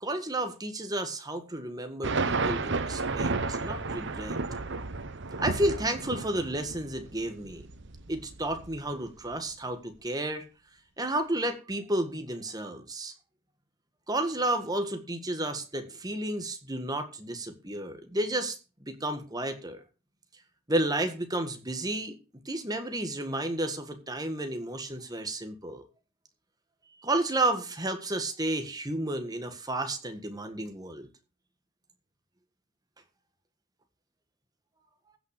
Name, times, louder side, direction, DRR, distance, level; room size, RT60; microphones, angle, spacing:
voice 1, 0.0-4.4 5.4-7.6 8.1-10.4 11.0-13.1 14.1-19.8 20.7-22.2 22.4-25.8 27.0-31.1, right 1 dB, 15° right, 7 dB, 1.7 m, -32 dB
sound 1, 2.0-9.4, right 3 dB, 55° right, 1.1 m, -33 dB
15.0 x 6.0 x 6.5 m, 0.33 s
head